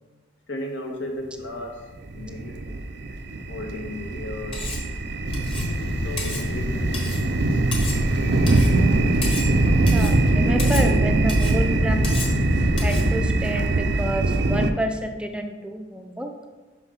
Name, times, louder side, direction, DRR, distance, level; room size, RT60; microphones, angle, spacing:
voice 1, 0.5-1.9 2.1-2.8 3.1-3.2 3.5-4.6 5.8-7.6, left 1 dB, 85° left, 2 dB, 1.3 m, -35 dB
sound 1, 2.0-14.7, right 2 dB, 65° right, 0.5 m, -22 dB
Cutlery silverware, 4.5-4.9 5.3-5.7 6.2-6.5 6.9-7.3 7.7-8.1 8.5-8.7 9.2-9.6 9.9-10.2 10.6-10.9 11.3-11.6 12.0-12.4 12.8-13.1, left 3 dB, 30° left, 1.2 m, -33 dB
sound 2, 5.3-13.3, left 1 dB, 60° left, 0.9 m, -28 dB
voice 2, 9.9-12.2 12.8-16.3, right 1 dB, 5° right, 4 dB, 0.4 m, -29 dB
5.9 x 5.8 x 5.6 m, 1.3 s
head